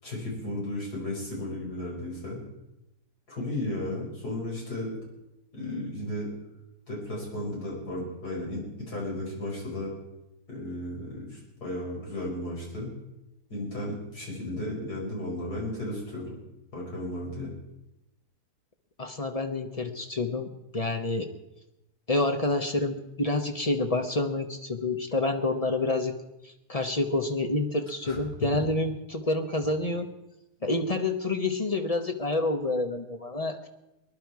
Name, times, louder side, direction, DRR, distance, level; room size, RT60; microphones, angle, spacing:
voice 1, 0.0-2.4 3.3-5.0 5.5-6.3 6.9-9.9 10.5-12.9 13.5-16.3 16.7-17.5 28.0-28.2, left 1 dB, 65° left, -4 dB, 5.8 m, -34 dB
voice 2, 19.0-21.3 22.1-26.1 26.4-30.1 30.6-33.7, left 2 dB, 30° left, 6 dB, 0.8 m, -28 dB
20.5 x 11.0 x 4.7 m, 0.91 s
omnidirectional pair, 1.8 m